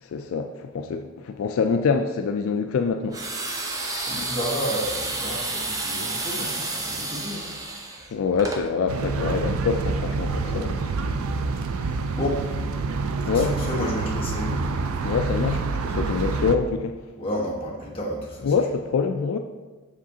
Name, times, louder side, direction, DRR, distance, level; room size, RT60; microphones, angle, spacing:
voice 1, 0.0-3.2 8.1-10.8 13.3-13.6 15.0-17.0 18.4-19.4, left 5 dB, 70° left, 5 dB, 0.3 m, -25 dB
sound 1, 3.1-8.6, right 2 dB, 15° right, 0.4 m, -30 dB
voice 2, 4.1-7.5 10.3-10.7 11.0-11.4 11.7-12.4 13.3-14.5 14.9-15.2 15.7-16.0 17.2-18.5, equal, 25° left, -5 dB, 1.2 m, -32 dB
sound 2, 8.9-16.6, right 4 dB, 75° right, 0.4 m, -27 dB
6.7 x 5.0 x 2.8 m, 1.3 s
head